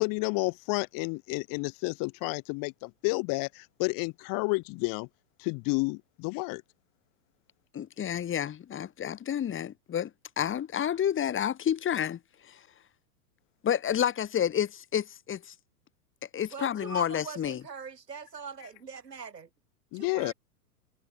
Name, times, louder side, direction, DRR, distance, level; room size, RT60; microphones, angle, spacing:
voice 1, 0.0-5.1 5.4-6.6 19.9-20.3, left 30 dB, 45° left, 2.5 m, -30 dB
voice 2, 7.7-10.1 10.4-12.2 12.5-12.6 13.6-15.5 16.3-17.6, left 9 dB, 25° left, 4.9 m, -29 dB
voice 3, 16.5-19.5 19.9-20.3, right 6 dB, 85° right, 6.0 m, -42 dB
hypercardioid pair, 100°, 47 cm